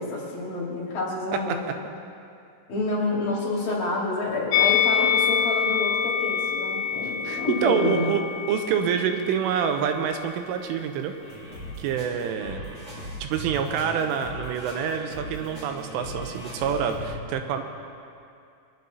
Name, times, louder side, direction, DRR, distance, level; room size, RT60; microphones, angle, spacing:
voice 1, 0.0-1.6 2.7-8.1, left 2 dB, 55° left, -5 dB, 3.6 m, -28 dB
voice 2, 1.3-1.8 7.2-8.2 8.5-11.1 11.8-12.7 13.2-17.6, right 7 dB, 85° right, 6 dB, 3.3 m, -27 dB
Musical instrument, 4.5-9.8 10.0-10.2, left 8 dB, 80° left, 3.1 m, -26 dB
sound 1, 11.2-17.1, equal, 30° right, 4.5 m, -39 dB
22.5 x 10.5 x 4.1 m, 2.5 s
omnidirectional pair, 5.7 m